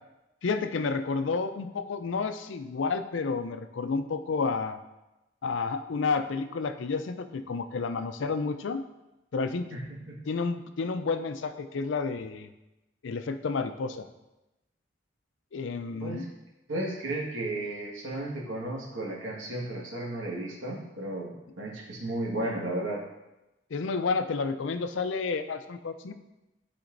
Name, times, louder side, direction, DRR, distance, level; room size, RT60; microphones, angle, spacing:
voice 1, 0.4-4.8 5.4-8.8 9.3-9.7 10.3-12.5 13.0-14.1 15.5-16.3 23.7-26.1, left 4 dB, 80° left, 9 dB, 0.5 m, -30 dB
voice 2, 9.7-10.2 16.0-16.3 16.7-23.0, right 1 dB, 90° right, -3 dB, 1.6 m, -34 dB
11.5 x 4.3 x 2.6 m, 0.98 s
head